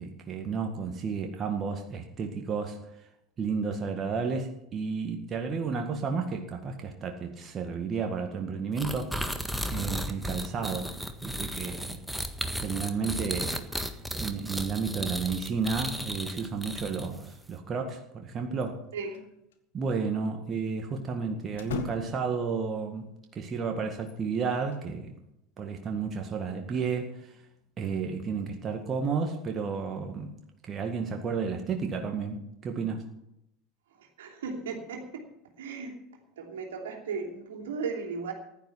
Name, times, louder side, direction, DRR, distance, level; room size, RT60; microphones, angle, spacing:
voice 1, 0.0-2.8 3.4-9.2 9.7-10.9 11.2-12.0 12.5-13.6 14.2-18.8 19.7-25.1 25.6-27.3 27.8-30.3 30.6-33.0, right 5 dB, 35° right, 3 dB, 1.9 m, -32 dB
sound 1, 8.8-17.3, equal, ahead, 1.6 m, -34 dB
sound 2, 18.6-19.3 19.5-19.6 21.5-22.4 24.0-24.9, left 7 dB, 70° left, 1.5 m, -40 dB
voice 2, 34.2-35.3 35.6-36.0 36.4-38.3, right 5 dB, 70° right, 1 dB, 3.0 m, -36 dB
15.0 x 11.5 x 5.8 m, 0.81 s
figure-of-eight pair, 75°, 0 cm